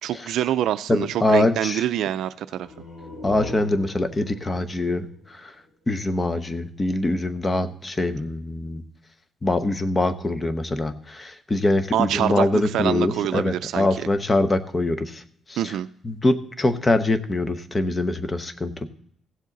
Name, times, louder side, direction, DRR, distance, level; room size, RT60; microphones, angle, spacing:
voice 1, 0.0-2.7 11.9-14.1 15.6-15.9, right 12 dB, 80° right, 12 dB, 0.3 m, -25 dB
voice 2, 0.9-1.8 3.2-5.5 5.9-8.8 9.4-15.2 15.5-15.7 16.0-18.9, left 2 dB, 25° left, 10 dB, 0.9 m, -23 dB
sound 1, 2.5-6.1, left 1 dB, 45° left, 4.8 m, -41 dB
16.0 x 7.4 x 4.0 m, 0.67 s
cardioid pair, 90°, 0 cm